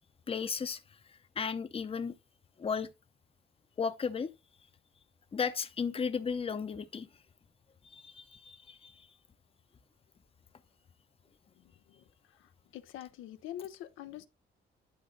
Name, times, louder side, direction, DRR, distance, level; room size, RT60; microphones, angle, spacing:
voice 1, 0.3-0.8 1.4-2.1 2.6-2.9 3.8-4.3 5.3-7.1 7.8-9.1, left 6 dB, 30° left, 0.7 m, -34 dB
voice 2, 11.6-14.3, left 12 dB, 85° left, 0.6 m, -46 dB
10.0 x 3.9 x 3.8 m
cardioid pair, 90°, 20 cm